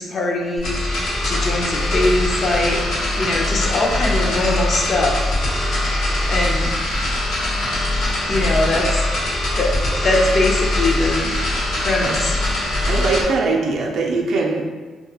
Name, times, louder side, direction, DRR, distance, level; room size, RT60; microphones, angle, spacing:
voice 1, 0.0-2.8 3.1-5.7 6.2-6.7 8.3-9.0 9.5-9.7 10.0-11.4 11.8-12.4, left 2 dB, 45° left, 0 dB, 0.5 m, -22 dB
sound 1, 0.6-13.2, left 1 dB, 85° left, 0.8 m, -22 dB
voice 2, 12.9-14.6, right 3 dB, 70° right, 0 dB, 0.4 m, -21 dB
2.3 x 2.2 x 2.8 m, 1.4 s
cardioid pair, 90°, 0 cm